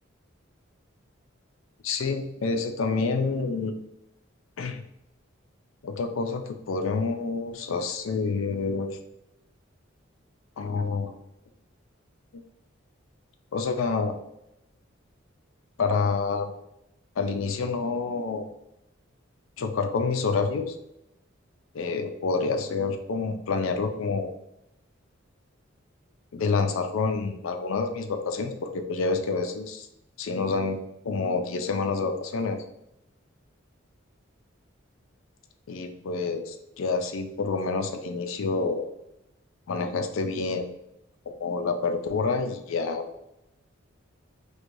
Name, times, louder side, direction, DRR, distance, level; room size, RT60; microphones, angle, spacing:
voice 1, 1.8-3.8 4.6-4.8 5.8-9.0 10.6-11.1 13.5-14.1 15.8-16.5 17.2-18.5 19.6-20.7 21.7-24.3 26.3-29.9 30.2-30.8 31.0-32.6 35.7-38.9 39.7-40.8 41.3-43.0, left 4 dB, 80° left, 7 dB, 0.4 m, -28 dB
4.5 x 2.3 x 2.6 m, 0.84 s
head